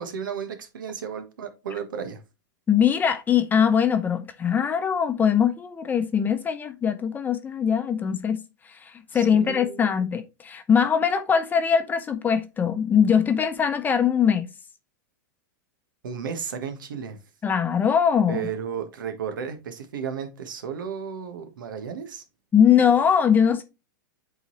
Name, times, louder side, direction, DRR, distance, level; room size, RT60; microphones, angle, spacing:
voice 1, 0.0-2.2 9.1-9.9 16.0-17.2 18.3-22.2, right 7 dB, 85° right, 1.5 m, -33 dB
voice 2, 2.7-8.4 8.8-14.5 17.4-18.5 22.5-23.6, left 7 dB, 15° left, 0.8 m, -21 dB
8.1 x 3.9 x 3.1 m
hypercardioid pair, 135°, 11 cm